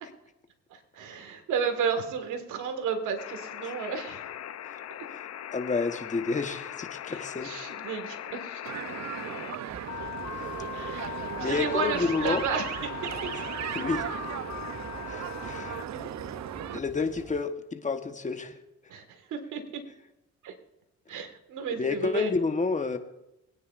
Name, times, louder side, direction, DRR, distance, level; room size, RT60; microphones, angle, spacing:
voice 1, 0.7-4.2 7.1-8.7 10.7-13.3 15.4-15.6 15.9-16.0 18.9-19.8 20.4-20.5 21.1-22.3, right 6 dB, 85° right, 6 dB, 1.8 m, -33 dB
sound 1, 3.2-15.9, left 12 dB, 60° left, 0.7 m, -40 dB
voice 2, 5.5-7.5 10.3-10.6 11.4-12.4 13.7-14.0 15.1-15.8 16.7-18.5 21.7-23.0, left 4 dB, 25° left, 7 dB, 1.1 m, -30 dB
sound 2, 8.7-16.8, right 10 dB, 65° right, 0.7 m, -37 dB
sound 3, 9.7-17.4, right 2 dB, 20° right, 1.0 m, -48 dB
22.0 x 9.6 x 2.5 m, 0.90 s
cardioid pair, 90°, 30 cm